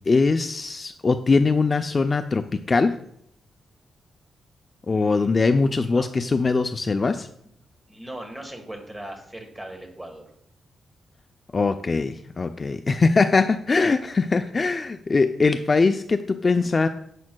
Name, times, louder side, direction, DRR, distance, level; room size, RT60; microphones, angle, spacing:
voice 1, 0.1-2.9 4.9-7.3 11.5-16.9, left 4 dB, 30° left, 8 dB, 0.3 m, -21 dB
voice 2, 4.9-6.1 7.9-10.2, right 1 dB, 15° right, 4 dB, 1.3 m, -39 dB
10.5 x 7.2 x 2.2 m, 0.73 s
wide cardioid pair, 145°, 0 cm